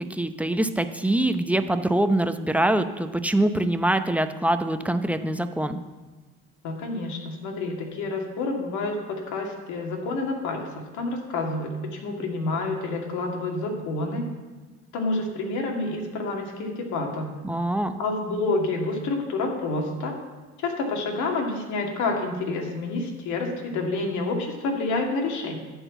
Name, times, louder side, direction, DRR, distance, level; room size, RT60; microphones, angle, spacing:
voice 1, 0.0-5.8 17.4-17.9, right 1 dB, 5° right, 9 dB, 0.7 m, -24 dB
voice 2, 6.6-14.2 14.9-17.3 18.0-20.1 20.6-25.6, left 3 dB, 70° left, 1 dB, 2.1 m, -28 dB
11.5 x 4.5 x 8.0 m, 1.2 s
supercardioid pair, 85°, 30 cm